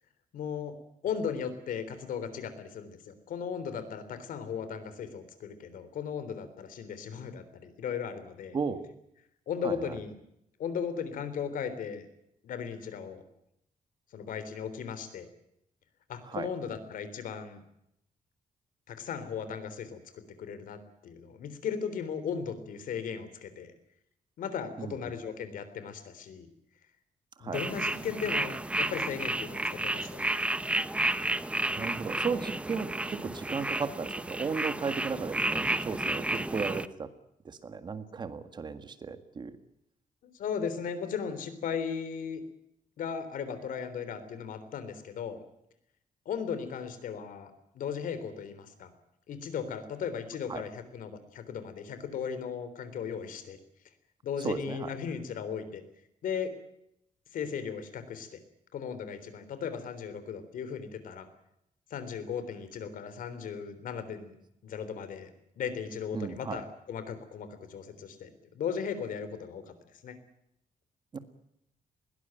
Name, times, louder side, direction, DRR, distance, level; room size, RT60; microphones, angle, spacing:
voice 1, 0.3-0.8 1.0-8.6 9.5-10.2 10.6-12.0 12.4-13.2 14.1-15.3 16.1-17.6 18.9-23.7 24.4-26.5 27.4-30.4 40.2-42.4 43.0-45.4 46.3-48.9 49.3-53.6 54.2-55.8 56.2-56.5 57.3-58.4 58.7-61.3 61.9-64.4 64.6-65.3 65.6-69.7 70.0-70.2, left 7 dB, 85° left, 11 dB, 3.6 m, -37 dB
voice 2, 9.6-10.0 16.3-16.5 24.8-25.0 27.4-27.6 31.8-37.1 37.5-39.5 50.5-50.6 54.4-54.9 66.1-66.6 71.1-71.2, right 5 dB, 35° right, 10 dB, 1.8 m, -35 dB
sound 1, 27.5-36.9, right 2 dB, 10° right, 0.8 m, -32 dB
21.0 x 18.5 x 9.1 m, 0.80 s
wide cardioid pair, 165°, 14 cm